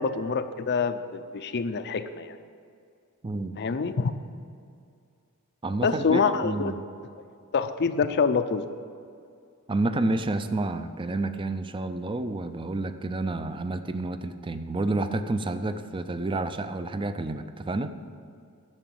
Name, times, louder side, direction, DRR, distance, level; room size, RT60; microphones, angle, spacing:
voice 1, 0.0-2.4 3.6-4.1 5.8-6.7 7.5-8.7, left 5 dB, 50° left, 10 dB, 0.5 m, -26 dB
voice 2, 5.6-6.8 9.7-17.9, right 2 dB, 20° right, 10 dB, 0.5 m, -29 dB
11.0 x 7.0 x 7.5 m, 2.4 s
head